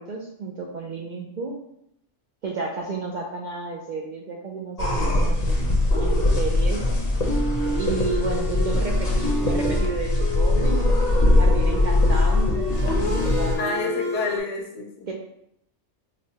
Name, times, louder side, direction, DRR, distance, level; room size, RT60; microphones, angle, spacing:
voice 1, 0.0-1.6 2.4-6.9 7.8-13.9 15.1-15.2, right 3 dB, 65° right, -1 dB, 0.4 m, -32 dB
sound 1, 4.8-13.5, left 1 dB, 40° left, 0.6 m, -21 dB
voice 2, 5.0-5.3 13.6-15.1, left 3 dB, 80° left, 0 dB, 1.0 m, -29 dB
sound 2, 6.8-14.4, left 2 dB, 45° right, 1.8 m, -30 dB
4.9 x 2.1 x 2.7 m, 0.74 s
omnidirectional pair, 1.2 m